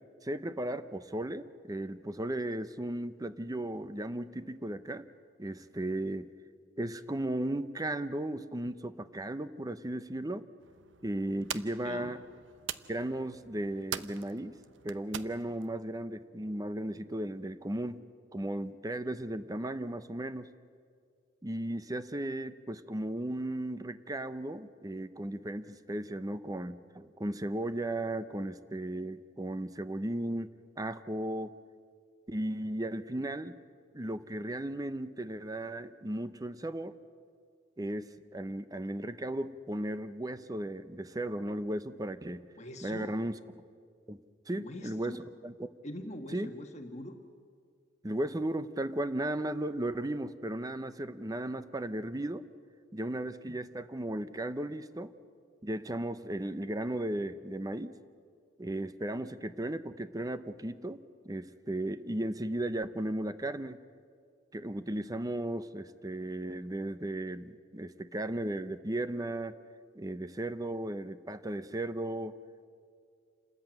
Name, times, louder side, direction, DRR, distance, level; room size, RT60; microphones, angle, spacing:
voice 1, 0.2-5.1 5.4-6.3 6.8-10.5 11.0-12.2 12.9-14.6 14.8-18.0 18.3-20.5 21.4-31.6 32.3-33.6 33.9-37.0 37.8-42.4 42.8-43.4 44.1-44.2 44.5-45.7 46.3-46.5 48.0-52.5 52.9-55.1 55.6-58.0 58.6-63.8 64.5-69.6 69.9-72.4, right 1 dB, 20° right, 12 dB, 0.7 m, -35 dB
sound 1, 10.6-15.8, right 9 dB, 85° right, 0.7 m, -44 dB
voice 2, 11.8-12.1 42.6-43.1 44.5-45.2 45.8-47.2, left 1 dB, 40° left, 4 dB, 1.4 m, -43 dB
28.0 x 14.0 x 9.0 m, 2.2 s
head